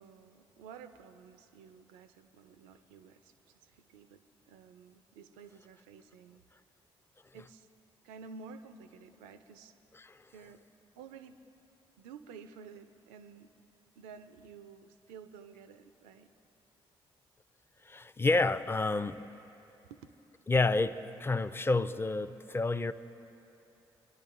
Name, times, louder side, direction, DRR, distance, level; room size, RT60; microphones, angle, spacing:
voice 1, 0.0-6.4 7.3-7.7 8.0-9.8 10.3-10.7 11.0-11.4 12.0-13.5 14.0-16.3 19.8-20.1, right 6 dB, 80° right, 10 dB, 0.4 m, -52 dB
voice 2, 17.8-19.3 20.5-22.9, left 3 dB, 20° left, 13 dB, 0.4 m, -29 dB
26.0 x 10.0 x 2.5 m, 2.9 s
hypercardioid pair, 45°, 13 cm